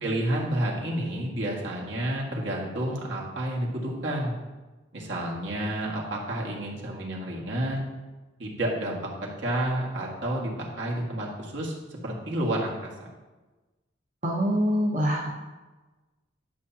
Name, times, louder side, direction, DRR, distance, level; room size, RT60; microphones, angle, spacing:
voice 1, 0.0-4.3 4.9-7.9 8.4-11.7 12.0-12.9, right 1 dB, 65° right, -3 dB, 1.9 m, -30 dB
voice 2, 14.2-15.3, equal, 40° right, -5 dB, 1.1 m, -24 dB
11.0 x 7.0 x 2.9 m, 1.2 s
head